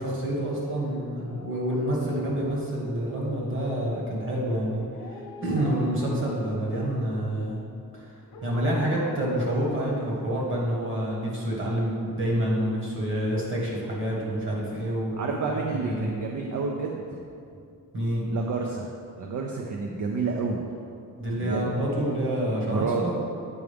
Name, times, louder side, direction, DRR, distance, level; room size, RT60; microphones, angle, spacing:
voice 1, 0.0-7.6 7.9-8.0 8.4-15.2 15.8-16.2 17.9-18.2 21.2-23.1, right 1 dB, 35° right, -4 dB, 1.4 m, -28 dB
Dog, 1.1-3.2 4.9-6.6 8.3-10.4 10.8-10.9, left 2 dB, 75° left, 0.9 m, -44 dB
voice 2, 15.2-17.2 18.3-18.9 19.2-20.6 21.3-21.7 22.7-23.1, right 4 dB, 60° right, 0 dB, 0.5 m, -29 dB
8.3 x 4.7 x 3.4 m, 2.4 s
wide cardioid pair, 175°, 34 cm